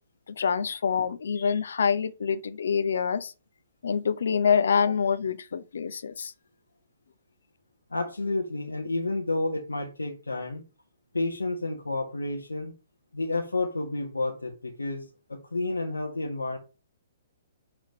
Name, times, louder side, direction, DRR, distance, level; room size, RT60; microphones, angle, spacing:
voice 1, 0.3-3.3 3.8-6.3, left 6 dB, 65° left, 0.9 m, -26 dB
voice 2, 7.9-10.6 11.1-12.7 13.1-16.6, left 2 dB, 85° left, 1.5 m, -30 dB
6.3 x 4.6 x 5.4 m
figure-of-eight pair, 125°, 0 cm